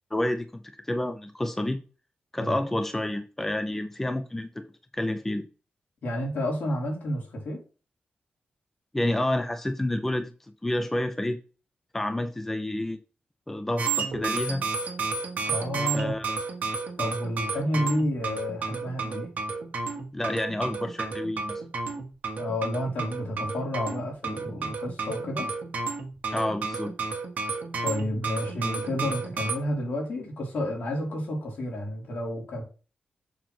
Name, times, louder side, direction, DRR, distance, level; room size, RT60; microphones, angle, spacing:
voice 1, 0.1-1.8 2.3-4.6 4.9-5.4 8.9-10.3 10.6-11.4 11.9-13.0 13.5-14.6 15.9-16.2 20.1-21.6 26.3-26.9, left 1 dB, 10° left, 0.6 m, -29 dB
voice 2, 6.0-7.6 15.5-16.1 17.0-19.3 22.4-25.5 27.8-32.6, left 1 dB, 80° left, 3.1 m, -30 dB
sound 1, 13.8-29.5, right 4 dB, 60° right, 1.5 m, -32 dB
6.9 x 3.1 x 5.8 m
wide cardioid pair, 150°, 3 cm